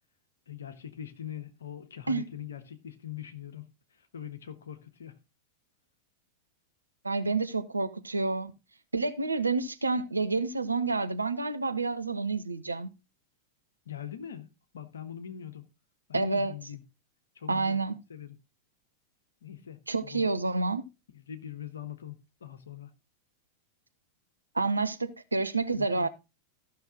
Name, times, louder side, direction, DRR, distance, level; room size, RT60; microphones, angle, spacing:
voice 1, 0.5-3.7 4.1-5.2 13.8-14.5 14.7-15.7 16.1-16.8 17.3-17.8 18.1-18.4 19.4-20.3 21.1-22.9 25.8-26.1, left 9 dB, 70° left, 1.2 m, -42 dB
voice 2, 7.0-8.5 8.9-12.9 16.1-16.5 17.5-18.0 19.9-20.8 24.5-26.1, right 3 dB, 80° right, 0.7 m, -29 dB
13.5 x 6.2 x 3.8 m
figure-of-eight pair, 90°, 0 cm